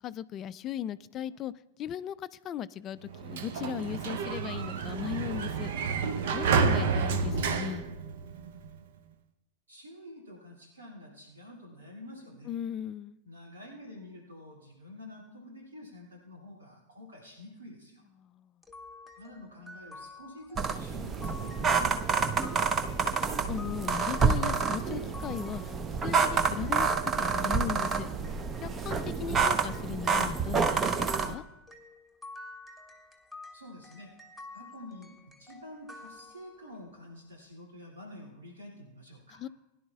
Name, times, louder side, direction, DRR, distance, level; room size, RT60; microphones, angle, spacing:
voice 1, 0.0-1.5 1.8-5.7 6.3-7.8 12.5-13.2 18.2-18.5 23.5-25.6 26.0-26.9 27.2-28.1 28.6-31.4 39.4-39.5, left 10 dB, 30° left, 0.4 m, -37 dB
Sliding door, 3.1-8.7, right 5 dB, 55° right, 0.8 m, -30 dB
voice 2, 9.7-12.5 13.2-18.0 19.2-23.0 33.5-34.1 34.5-39.4, left 1 dB, 70° right, 2.6 m, -48 dB
sound 1, 18.6-29.1 29.4-36.8, left 2 dB, ahead, 1.2 m, -50 dB
sound 2, 20.6-31.3, right 5 dB, 20° right, 0.7 m, -28 dB
21.0 x 11.0 x 2.3 m
figure-of-eight pair, 90°, 0 cm